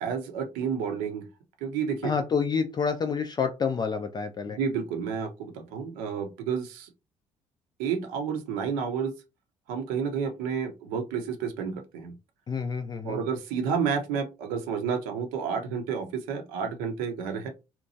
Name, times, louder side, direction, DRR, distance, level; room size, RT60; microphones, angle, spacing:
voice 1, 0.0-1.2 1.6-2.1 4.6-6.9 7.8-9.1 9.7-12.1 13.0-17.5, right 6 dB, 60° right, 0.7 m, -30 dB
voice 2, 2.0-4.6 12.5-13.2, left 5 dB, 25° left, 0.4 m, -28 dB
2.8 x 2.2 x 2.6 m
figure-of-eight pair, 45°, 17 cm